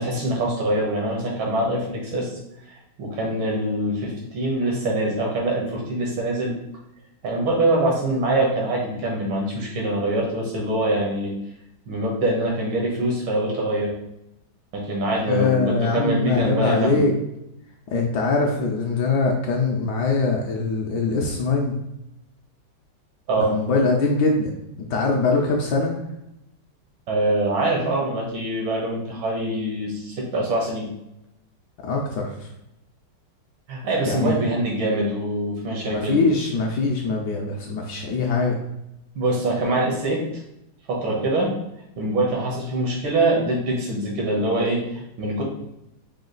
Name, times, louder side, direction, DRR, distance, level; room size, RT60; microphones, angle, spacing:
voice 1, 0.0-2.3 2.7-6.5 7.2-11.3 11.9-13.9 14.7-17.0 23.3-23.5 27.1-30.9 33.7-36.2 39.2-40.2 40.9-41.5 42.0-45.4, right 1 dB, 80° right, -1 dB, 1.9 m, -24 dB
voice 2, 15.3-17.1 17.9-21.7 23.4-24.5 24.9-25.9 31.8-32.3 34.0-34.4 35.9-38.5, left 3 dB, 70° left, 0 dB, 1.1 m, -22 dB
5.0 x 2.3 x 3.8 m, 0.84 s
omnidirectional pair, 2.2 m